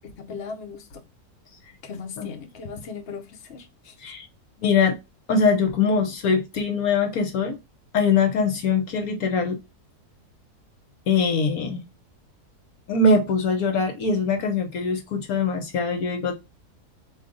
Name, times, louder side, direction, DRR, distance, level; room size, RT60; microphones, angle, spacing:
voice 1, 0.1-1.0 1.8-4.1, left 5 dB, 50° left, 1.0 m, -38 dB
voice 2, 4.6-5.0 5.3-7.6 7.9-9.6 11.1-11.8 12.9-16.3, left 4 dB, 70° left, 1.2 m, -22 dB
4.0 x 2.8 x 3.8 m
omnidirectional pair, 1.7 m